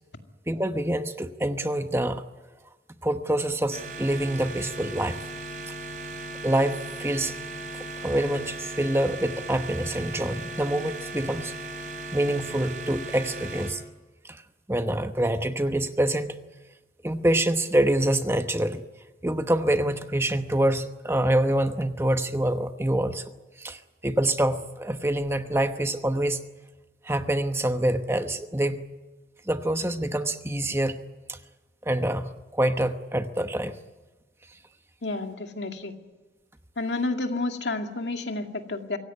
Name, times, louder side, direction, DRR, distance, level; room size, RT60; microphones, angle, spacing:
voice 1, 0.5-2.2 3.0-5.2 5.7-5.8 6.4-7.3 7.7-11.5 12.1-13.8 14.2-14.4 14.7-16.4 17.0-18.8 19.2-23.2 23.6-26.4 27.0-28.8 29.5-31.0 31.3-31.4 31.8-33.8, right 1 dB, 15° right, 8 dB, 1.0 m, -26 dB
sound 1, 3.7-13.7, right 2 dB, 45° right, 4.4 m, -37 dB
voice 2, 35.0-35.9 36.8-39.0, left 2 dB, 80° left, 4 dB, 2.3 m, -30 dB
25.0 x 17.0 x 9.6 m, 1.2 s
head